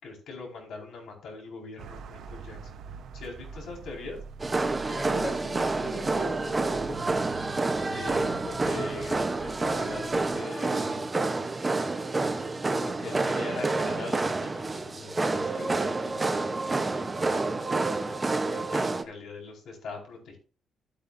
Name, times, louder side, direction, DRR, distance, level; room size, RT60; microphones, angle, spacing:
voice 1, 0.0-2.7 3.1-4.2 5.9-6.1 7.9-11.0 12.8-17.6 18.4-20.4, left 3 dB, 65° left, 0 dB, 4.9 m, -42 dB
sound 1, 1.8-10.4, right 6 dB, 65° right, 0.9 m, -45 dB
sound 2, 4.4-19.0, right 3 dB, 20° right, 0.8 m, -28 dB
voice 2, 4.7-7.2 17.1-17.8, equal, 25° left, 0 dB, 4.3 m, -40 dB
13.5 x 8.7 x 2.6 m, 0.37 s
cardioid pair, 150°, 0 cm